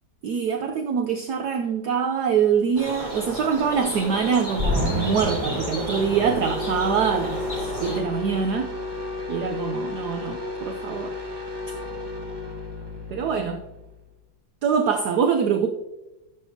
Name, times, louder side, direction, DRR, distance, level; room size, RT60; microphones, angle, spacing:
voice 1, 0.2-8.7 9.3-11.2 13.1-13.6 14.6-15.7, right 6 dB, 65° right, 5 dB, 1.1 m, -24 dB
sound 1, 2.7-8.0, equal, 15° left, 3.1 m, -33 dB
sound 2, 4.6-14.0, left 2 dB, 15° right, 1.0 m, -31 dB
14.5 x 7.5 x 2.8 m, 1.0 s
omnidirectional pair, 2.1 m